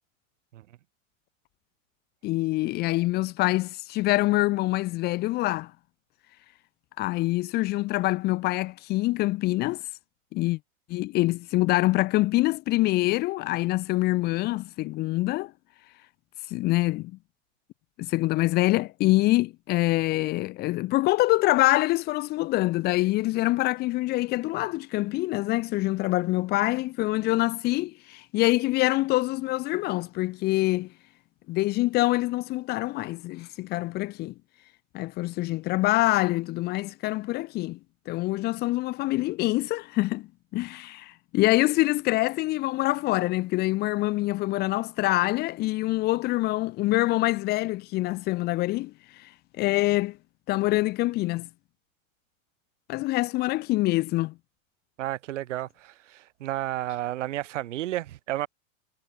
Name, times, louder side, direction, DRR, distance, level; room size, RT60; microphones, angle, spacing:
voice 1, 2.2-5.7 7.0-9.8 10.3-10.6 10.9-15.5 16.5-17.1 18.0-30.9 31.5-34.3 34.9-37.8 38.1-40.3 40.5-49.3 49.6-50.2 50.5-51.5 52.9-54.3, left 19 dB, 25° left, 1.5 m, -25 dB
voice 2, 55.0-58.5, right 14 dB, 60° right, 5.0 m, -32 dB
supercardioid pair, 170°, 40 cm